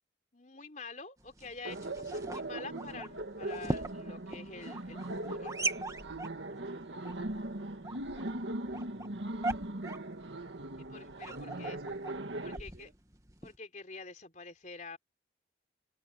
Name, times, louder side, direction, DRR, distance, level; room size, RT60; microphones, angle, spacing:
voice 1, 0.3-5.6 10.8-11.8 12.4-12.9 13.4-15.0, left 4 dB, 40° left, 3.7 m, -47 dB
sound 1, 1.2-13.6, right 2 dB, 20° right, 2.1 m, -41 dB
Laughter, 1.7-12.6, right 1 dB, 80° right, 1.8 m, -40 dB
voice 2, 6.3-10.1 11.2-12.0 12.2-12.9, right 1 dB, 55° right, 5.3 m, -58 dB
head